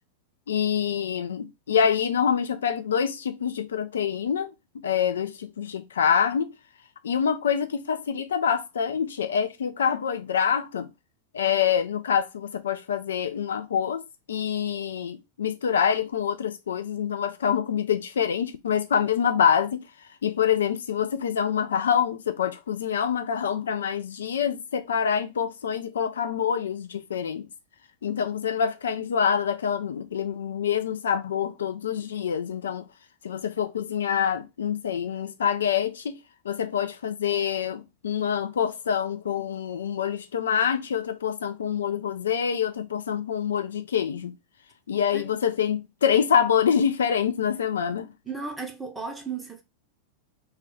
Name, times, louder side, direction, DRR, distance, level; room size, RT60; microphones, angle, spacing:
voice 1, 0.5-4.5 4.8-6.5 7.0-10.9 11.3-14.0 14.3-19.8 20.2-27.5 28.0-32.9 33.2-36.1 36.4-44.3 44.9-48.1, left 8 dB, 65° left, 0.3 m, -26 dB
voice 2, 48.3-49.6, right 4 dB, 10° right, 0.6 m, -35 dB
2.3 x 2.2 x 3.5 m
figure-of-eight pair, 90°, 0 cm